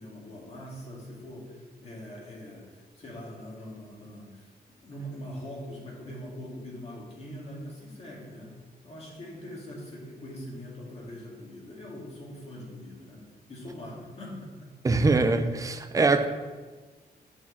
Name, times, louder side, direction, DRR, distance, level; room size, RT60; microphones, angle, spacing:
voice 1, 0.0-4.5 4.8-8.6 8.8-14.7, equal, 40° left, -3 dB, 2.2 m, -42 dB
voice 2, 14.8-16.3, right 3 dB, 20° right, 8 dB, 0.5 m, -23 dB
8.4 x 4.7 x 7.1 m, 1.4 s
wide cardioid pair, 175°, 16 cm